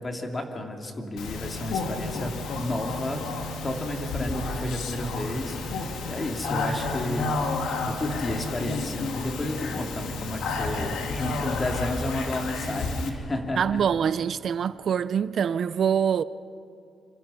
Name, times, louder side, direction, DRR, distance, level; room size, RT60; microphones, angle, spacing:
voice 1, 0.0-3.2 3.6-7.3 7.6-13.8, left 1 dB, 25° left, 2.8 m, -32 dB
Speech, 1.2-13.1, left 3 dB, 85° left, 2.5 m, -31 dB
voice 2, 13.6-16.2, right 8 dB, 55° right, 0.5 m, -24 dB
27.0 x 26.0 x 5.8 m
cardioid pair, 115°, 0 cm